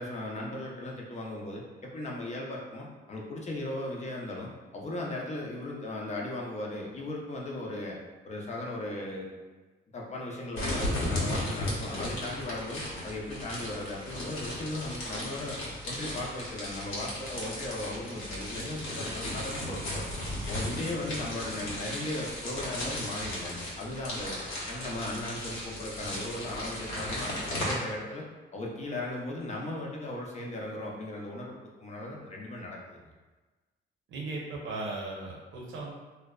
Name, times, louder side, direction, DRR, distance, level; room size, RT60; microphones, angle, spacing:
voice 1, 0.0-1.6 1.9-8.0 8.2-9.3 9.9-15.6 15.8-20.1 20.5-24.4 24.7-28.2 28.5-33.0, left 1 dB, 35° left, -2 dB, 0.5 m, -37 dB
sound 1, 10.5-27.7, left 1 dB, 85° left, 0.8 m, -35 dB
voice 2, 34.1-35.9, right 2 dB, 75° right, -3 dB, 0.7 m, -37 dB
2.5 x 2.1 x 2.3 m, 1.2 s
cardioid pair, 90°, 20 cm